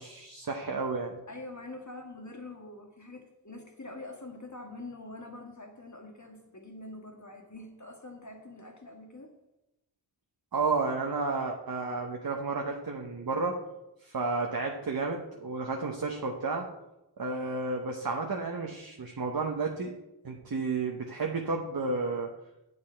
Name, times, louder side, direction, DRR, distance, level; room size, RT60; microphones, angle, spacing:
voice 1, 0.0-1.2 10.5-13.6 14.0-16.7 17.2-19.9 20.2-22.3, right 3 dB, 55° right, 1 dB, 0.9 m, -32 dB
voice 2, 1.3-9.3, left 2 dB, 40° left, 2 dB, 1.6 m, -45 dB
7.8 x 7.7 x 4.4 m, 0.95 s
wide cardioid pair, 45°, 42 cm